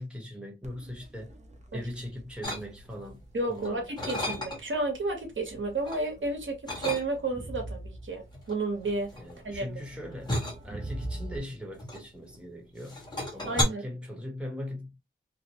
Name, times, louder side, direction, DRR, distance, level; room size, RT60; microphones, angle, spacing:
voice 1, 0.0-1.3 1.7-4.3 9.2-10.4 10.6-13.0 13.3-15.0, left 1 dB, 5° right, 1.0 m, -40 dB
Crowd, 0.6-11.4, right 1 dB, 35° right, 0.6 m, -45 dB
sound 1, 2.4-3.1 3.5-4.8 5.3-6.0 6.6-7.5 8.3-12.4 12.8-13.6, left 1 dB, 20° left, 1.3 m, -34 dB
voice 2, 3.3-9.1 9.4-9.8 13.4-13.8, right 2 dB, 80° right, 1.0 m, -32 dB
2.8 x 2.1 x 2.8 m
wide cardioid pair, 100°, 20 cm